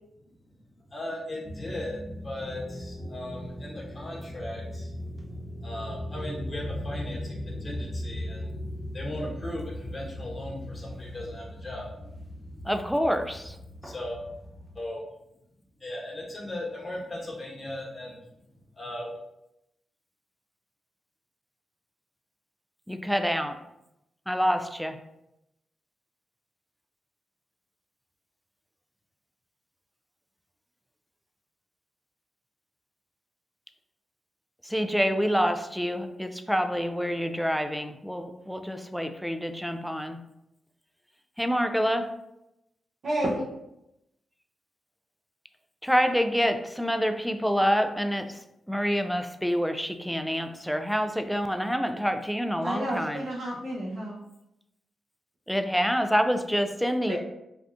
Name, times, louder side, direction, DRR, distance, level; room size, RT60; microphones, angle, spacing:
voice 1, 0.7-5.0 5.6-12.7 13.8-14.2 14.7-15.0 15.8-18.2 18.7-19.1, left 1 dB, 30° left, -4 dB, 1.2 m, -38 dB
sound 1, 1.4-14.8, left 1 dB, 20° right, 0.8 m, -38 dB
voice 2, 12.6-13.6 22.9-23.6 24.3-25.0 34.6-40.2 41.4-42.1 45.8-48.4 48.7-53.2 55.5-57.2, equal, ahead, 7 dB, 0.3 m, -27 dB
voice 3, 43.0-43.5 52.6-54.2 57.1-57.2, right 1 dB, 65° right, -7 dB, 0.8 m, -30 dB
3.4 x 2.3 x 2.5 m, 0.86 s
supercardioid pair, 50°, 0 cm